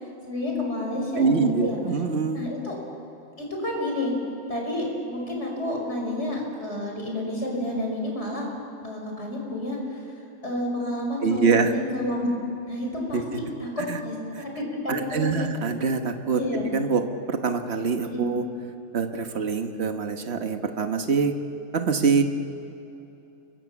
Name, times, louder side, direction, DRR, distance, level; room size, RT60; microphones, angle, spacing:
voice 1, 0.3-1.8 2.3-2.8 3.4-4.2 4.5-8.5 8.8-10.0 10.4-12.3 12.7-15.5 16.3-16.7 18.1-18.3, left 1 dB, 50° left, 0 dB, 5.8 m, -30 dB
voice 2, 1.2-2.4 11.2-11.7 13.1-13.4 13.9-14.0 14.3-14.4 14.9-16.4 16.7-18.4 18.9-21.3 21.7-22.2, right 5 dB, 45° right, 6 dB, 1.6 m, -24 dB
29.5 x 23.5 x 7.3 m, 2.9 s
omnidirectional pair, 1.5 m